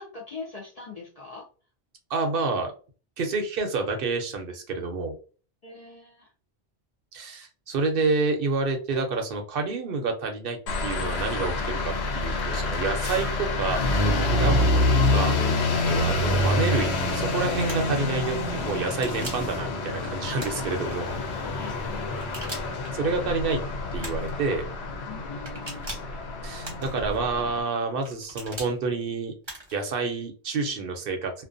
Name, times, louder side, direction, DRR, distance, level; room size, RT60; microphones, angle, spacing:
voice 1, 0.0-1.5 5.6-6.3 20.7-21.0 21.5-22.2 25.1-25.9, left 4 dB, 50° left, -2 dB, 0.5 m, -42 dB
voice 2, 2.1-2.7 3.2-5.1 7.1-14.8 15.1-15.4 15.8-21.1 22.9-23.6 23.9-24.7 26.4-29.3 29.7-31.4, right 3 dB, 65° right, 5 dB, 0.7 m, -28 dB
sound 1, 10.7-27.6, left 2 dB, 85° left, 0.9 m, -27 dB
sound 2, 17.7-18.0 18.9-19.5 20.4-21.0 22.1-22.9 24.0-24.4 25.5-26.2 26.6-27.2 28.1-28.7 29.4-29.8, right 1 dB, 30° right, 0.8 m, -40 dB
2.5 x 2.1 x 2.5 m, 0.37 s
omnidirectional pair, 1.1 m